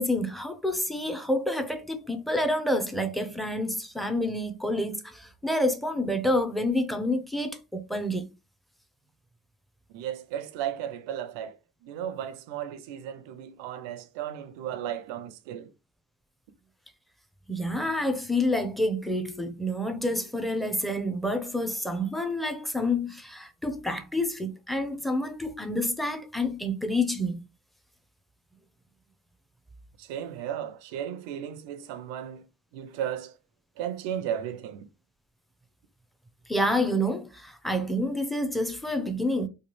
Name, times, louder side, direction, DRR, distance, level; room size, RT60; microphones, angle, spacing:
voice 1, 0.0-8.3 17.5-27.4 36.5-39.5, left 1 dB, ahead, 0.5 m, -28 dB
voice 2, 9.9-11.6 11.8-15.7 30.0-32.5 32.7-33.3 33.8-34.9, right 10 dB, 80° right, 0.6 m, -35 dB
3.2 x 2.3 x 3.0 m
supercardioid pair, 80°, 44 cm